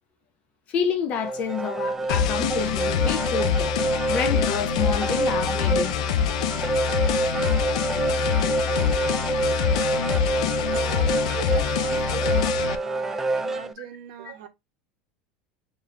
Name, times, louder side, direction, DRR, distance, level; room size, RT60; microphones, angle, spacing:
voice 1, 0.7-5.9, left 6 dB, 40° left, 0.9 m, -29 dB
sound 1, 1.1-13.7, right 2 dB, 10° right, 0.3 m, -27 dB
sound 2, 2.1-12.7, left 8 dB, 90° left, 0.4 m, -25 dB
voice 2, 10.7-14.5, right 10 dB, 75° right, 0.9 m, -39 dB
5.0 x 3.0 x 2.5 m
supercardioid pair, 140°, 4 cm